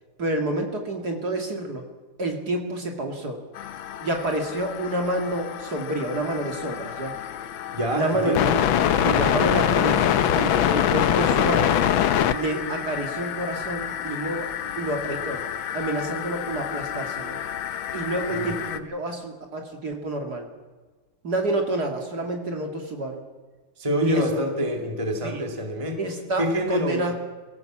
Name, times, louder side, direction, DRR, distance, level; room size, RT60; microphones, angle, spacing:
voice 1, 0.2-1.8 2.2-3.4 4.0-7.1 7.9-8.7 9.0-11.7 12.3-14.5 14.8-15.4 15.7-17.4 17.9-20.5 21.2-23.2 24.0-24.2 25.2-25.4 26.0-27.1, right 2 dB, 45° right, 3 dB, 2.6 m, -28 dB
sound 1, 3.5-18.8, left 10 dB, 70° left, 1.6 m, -26 dB
voice 2, 7.7-8.6 18.3-18.6 23.8-26.0 26.4-27.1, equal, 15° right, 3 dB, 2.2 m, -26 dB
23.0 x 16.0 x 7.4 m, 1.3 s
omnidirectional pair, 2.3 m